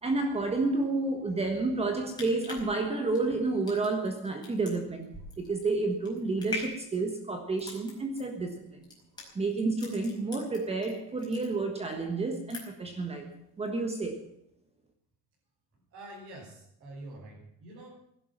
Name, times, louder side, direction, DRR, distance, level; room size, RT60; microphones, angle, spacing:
voice 1, 0.0-5.1 5.4-8.9 9.3-14.2, right 3 dB, 15° right, 5 dB, 1.4 m, -30 dB
sound 1, 2.1-10.9 11.2-12.0 12.3-12.9 13.3-13.4, left 3 dB, 10° left, 4.9 m, -43 dB
voice 2, 15.7-17.9, right 1 dB, 35° right, -7 dB, 5.6 m, -47 dB
17.0 x 11.0 x 7.4 m, 0.76 s
cardioid pair, 180°, 40 cm